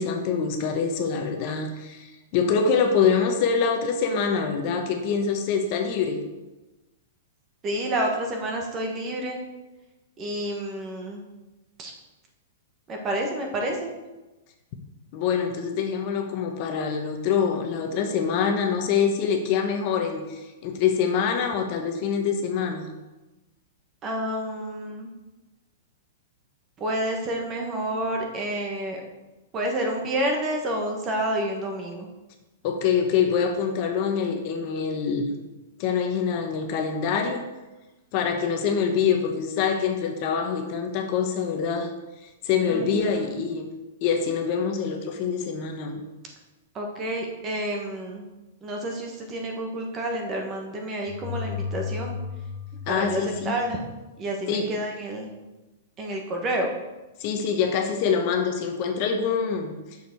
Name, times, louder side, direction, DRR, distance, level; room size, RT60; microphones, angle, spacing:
voice 1, 0.0-6.2 15.1-22.9 32.6-35.3 35.8-37.4 38.1-41.9 42.2-43.7 44.0-46.0 52.9-53.6 54.5-54.7 57.2-59.7, left 6 dB, 35° left, 4 dB, 1.0 m, -25 dB
voice 2, 7.6-9.4 10.2-11.2 11.8-11.9 12.9-13.9 24.0-25.1 26.8-29.0 29.5-32.1 42.6-43.3 46.7-48.2 48.6-52.2 52.9-53.8 54.2-55.3 56.0-56.7, right 1 dB, 20° right, 2 dB, 1.3 m, -29 dB
sound 1, 51.1-54.0, left 6 dB, 15° left, 0.8 m, -34 dB
8.0 x 6.6 x 4.6 m, 1.1 s
hypercardioid pair, 160°, 0 cm